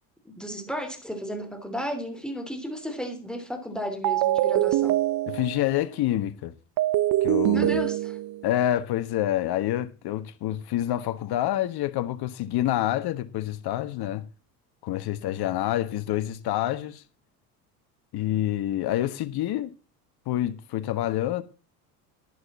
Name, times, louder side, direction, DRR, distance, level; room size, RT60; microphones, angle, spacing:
voice 1, 0.2-5.0 7.5-8.2, equal, ahead, 2.9 m, -34 dB
sound 1, 4.0-5.7 6.8-8.5, right 14 dB, 45° right, 0.9 m, -24 dB
voice 2, 5.3-6.5 7.2-7.8 8.4-14.2 14.8-17.0 18.1-19.7 20.3-21.4, left 13 dB, 50° left, 1.3 m, -27 dB
11.5 x 11.0 x 4.2 m
hypercardioid pair, 70°, 48 cm